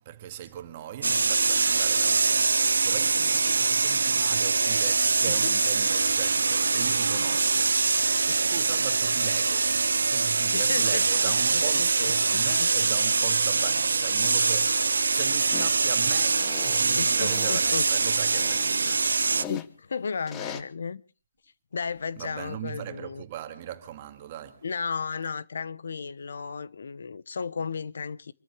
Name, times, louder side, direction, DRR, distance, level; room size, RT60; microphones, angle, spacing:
voice 1, 0.0-8.0 8.5-19.4 22.2-24.7, right 11 dB, 30° right, 2.1 m, -38 dB
sound 1, 1.0-19.5, right 4 dB, 80° right, 1.0 m, -24 dB
voice 2, 10.5-12.7 17.0-17.8 19.5-21.0 21.7-23.2 24.6-28.3, left 5 dB, 60° left, 1.0 m, -34 dB
sound 2, 15.5-15.7 16.3-16.9 17.3-17.6 18.3-19.7 20.3-20.6, left 9 dB, 15° left, 1.1 m, -39 dB
26.5 x 13.5 x 3.4 m
hypercardioid pair, 160°, 0 cm